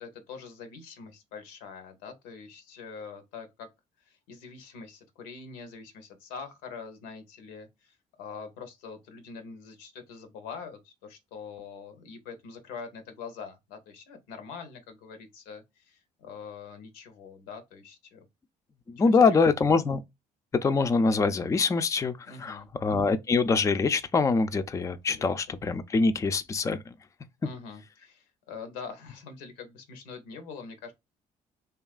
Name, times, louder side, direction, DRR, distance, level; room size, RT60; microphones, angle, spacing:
voice 1, 0.0-3.7 4.0-18.2 19.0-19.5 22.3-22.7 25.1-25.3 27.4-30.9, left 5 dB, 90° left, 0.7 m, -44 dB
voice 2, 18.9-20.0 20.6-26.9, left 4 dB, 20° left, 0.4 m, -24 dB
2.8 x 2.3 x 2.4 m
supercardioid pair, 70°, 16 cm